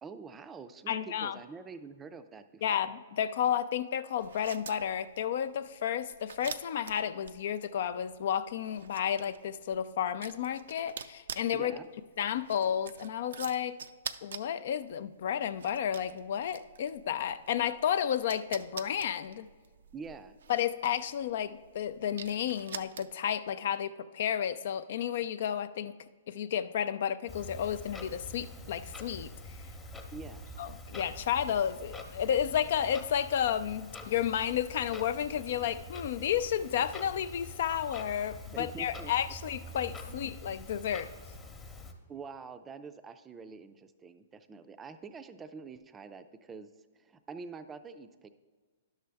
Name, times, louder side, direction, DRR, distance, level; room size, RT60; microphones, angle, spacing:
voice 1, 0.0-2.6 11.5-11.9 19.9-20.4 30.1-30.4 38.5-39.1 40.1-40.2 42.1-46.7 47.0-48.3, right 5 dB, 15° right, 10 dB, 0.4 m, -46 dB
voice 2, 0.9-1.4 2.6-11.8 12.2-13.8 14.2-19.5 20.5-25.9 26.3-29.6 30.6-41.1, left 9 dB, 60° left, 14 dB, 0.4 m, -32 dB
sound 1, 4.2-23.4, right 7 dB, 75° right, 0.4 m, -47 dB
Clock, 27.3-41.9, left 2 dB, 15° left, 0.9 m, -46 dB
10.5 x 6.5 x 3.4 m, 1.4 s
hypercardioid pair, 135°, 0 cm